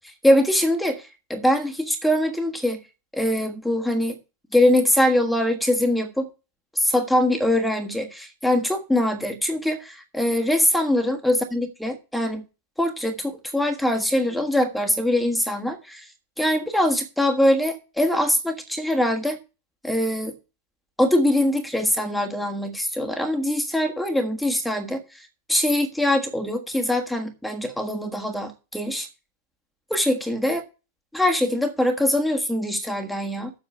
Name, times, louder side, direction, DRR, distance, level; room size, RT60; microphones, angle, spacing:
voice 1, 0.0-2.8 3.1-4.2 4.5-6.3 6.7-12.4 12.8-16.1 16.4-19.4 19.8-20.3 21.0-29.1 29.9-30.6 31.1-33.5, left 1 dB, ahead, 1.5 m, -23 dB
7.6 x 6.3 x 6.7 m
figure-of-eight pair, 90°, 0 cm